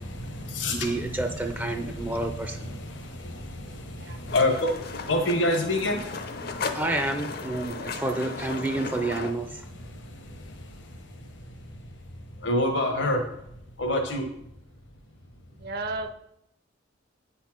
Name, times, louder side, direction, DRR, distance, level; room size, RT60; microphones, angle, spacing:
voice 1, 0.0-6.8 7.5-8.0 8.9-9.0 9.5-13.4 13.8-14.3, left 1 dB, 70° left, 3 dB, 1.1 m, -30 dB
voice 2, 0.7-2.6 6.7-9.5, right 2 dB, 10° right, 5 dB, 0.5 m, -29 dB
sound 1, 4.3-9.3, left 4 dB, 55° left, 0.7 m, -36 dB
voice 3, 7.7-8.2 15.5-16.1, right 3 dB, 55° right, 8 dB, 0.8 m, -35 dB
8.9 x 4.2 x 6.0 m, 0.78 s
head